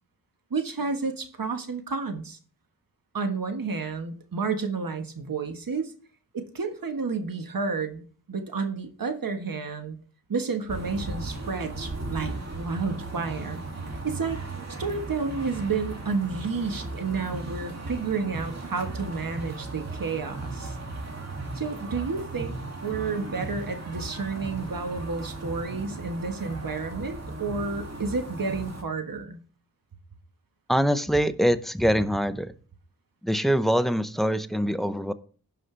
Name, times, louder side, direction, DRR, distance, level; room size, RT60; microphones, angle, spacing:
voice 1, 0.5-2.4 3.1-5.9 6.3-10.0 10.3-13.6 14.0-14.4 14.8-20.8 21.5-22.5 22.8-29.4, right 4 dB, 65° right, 1.5 m, -31 dB
sound 1, 10.7-28.8, right 2 dB, 45° right, 2.4 m, -36 dB
voice 2, 30.7-32.5 33.2-35.1, equal, ahead, 0.7 m, -24 dB
16.5 x 5.6 x 3.4 m
wide cardioid pair, 65°, 37 cm